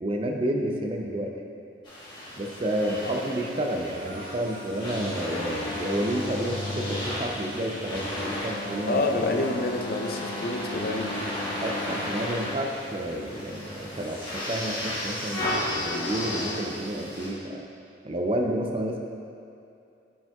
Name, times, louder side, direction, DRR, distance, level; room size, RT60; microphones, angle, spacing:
voice 1, 0.0-1.3 2.4-9.0 11.6-17.7 18.0-19.0, right 1 dB, 30° right, 2 dB, 0.5 m, -30 dB
sound 1, 1.8-17.3, left 1 dB, 25° left, 1.2 m, -33 dB
voice 2, 2.8-3.2 8.9-11.3, left 2 dB, 55° left, 2 dB, 0.5 m, -28 dB
sound 2, 3.9-9.5, right 1 dB, 60° right, 1.2 m, -49 dB
8.7 x 5.4 x 2.3 m, 2.6 s
head